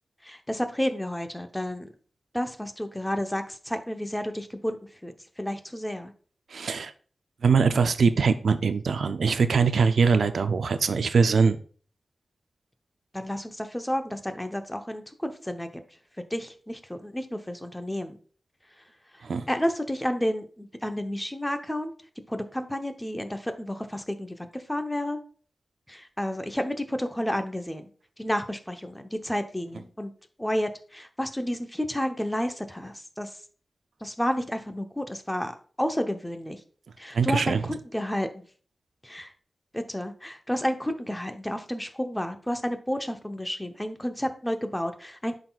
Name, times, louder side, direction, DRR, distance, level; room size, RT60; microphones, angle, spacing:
voice 1, 0.2-1.9 2.3-4.8 5.0-6.1 13.1-15.8 16.3-18.2 19.5-21.9 22.3-25.2 25.9-27.9 28.2-30.1 30.4-33.3 34.0-36.6 37.0-38.4 39.0-39.3 39.7-45.4, equal, 10° left, 7 dB, 0.8 m, -31 dB
voice 2, 6.5-6.9 7.4-11.6 19.2-19.5 37.1-37.6, right 5 dB, 80° right, 11 dB, 0.4 m, -22 dB
11.0 x 4.0 x 2.4 m, 0.43 s
cardioid pair, 65°, 0 cm